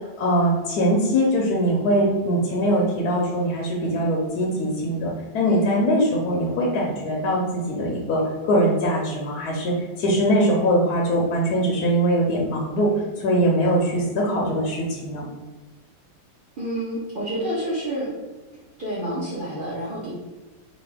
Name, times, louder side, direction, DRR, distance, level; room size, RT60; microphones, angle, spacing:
voice 1, 0.2-12.9 13.2-15.2, equal, 70° left, -2 dB, 1.0 m, -22 dB
voice 2, 16.6-18.1 18.8-20.1, right 1 dB, 65° right, -9 dB, 0.5 m, -28 dB
4.0 x 2.3 x 3.4 m, 1.2 s
omnidirectional pair, 2.1 m